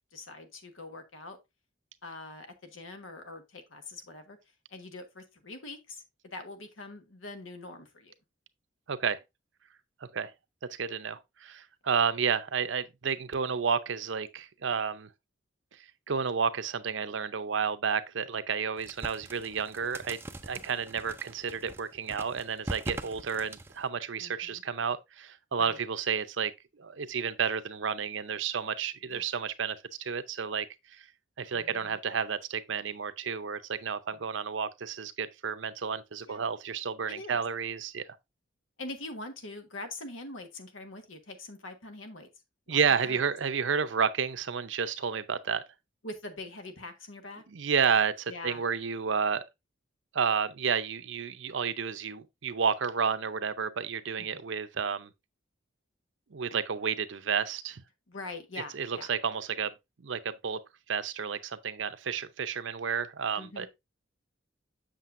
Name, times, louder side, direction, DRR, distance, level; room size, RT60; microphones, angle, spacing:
voice 1, 0.1-1.4 2.0-4.4 4.7-8.1 22.9-23.1 24.2-24.6 25.6-25.8 29.1-29.2 31.5-32.0 34.1-34.2 36.3-36.4 37.1-37.4 38.8-42.3 42.7-43.2 46.0-47.4 48.3-48.6 54.2-54.4 58.1-59.1 63.3-63.7, left 2 dB, 85° left, 1.4 m, -44 dB
voice 2, 8.9-9.2 10.1-10.3 10.7-15.1 16.1-26.5 26.8-30.7 31.4-38.0 42.7-45.6 47.5-49.4 50.1-55.1 56.3-57.8 58.7-59.7 60.0-60.6 60.9-63.7, right 6 dB, 70° right, 0.6 m, -31 dB
sound 1, 18.8-23.9, right 2 dB, 10° right, 0.4 m, -42 dB
7.6 x 6.5 x 2.6 m
head